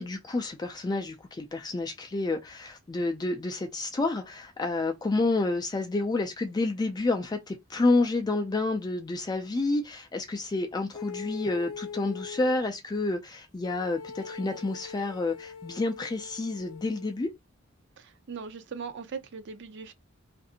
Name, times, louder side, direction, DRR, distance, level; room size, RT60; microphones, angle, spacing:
voice 1, 0.0-17.3, left 2 dB, 20° left, 0.3 m, -29 dB
sound 1, 10.9-12.6 13.6-17.2, left 6 dB, 85° left, 0.5 m, -42 dB
voice 2, 18.0-19.9, right 5 dB, 60° right, 0.5 m, -39 dB
2.5 x 2.4 x 2.7 m
head